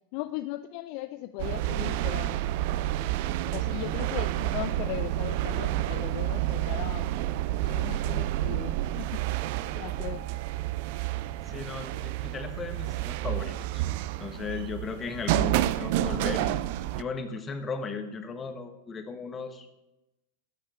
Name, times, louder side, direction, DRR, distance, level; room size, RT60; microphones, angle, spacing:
voice 1, 0.1-2.4 3.5-7.1 7.6-9.3 9.7-10.3, left 16 dB, 45° left, 12 dB, 0.4 m, -38 dB
sound 1, 1.4-17.0, right 14 dB, 50° right, 0.4 m, -29 dB
voice 2, 11.5-13.8 14.2-16.6 17.0-19.7, left 4 dB, 20° left, 8 dB, 1.3 m, -36 dB
12.0 x 8.3 x 4.9 m, 0.96 s
figure-of-eight pair, 90°, 0 cm